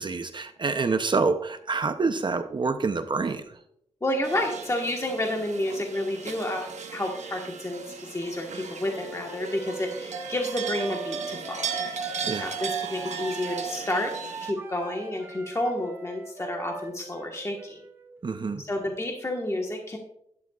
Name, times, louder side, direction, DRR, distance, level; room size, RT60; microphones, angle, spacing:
voice 1, 0.0-3.6 12.3-12.5 18.2-18.6, right 4 dB, 40° right, 8 dB, 0.6 m, -27 dB
voice 2, 4.0-11.8 12.4-14.1 14.4-17.8 18.6-20.0, left 1 dB, 25° left, 1 dB, 1.3 m, -30 dB
sound 1, 4.2-14.5, right 6 dB, 85° right, 1.1 m, -36 dB
Wind instrument woodwind instrument, 8.8-18.6, right 2 dB, 20° right, 1.2 m, -41 dB
12.0 x 11.0 x 2.4 m, 0.73 s
wide cardioid pair, 95°, 12 cm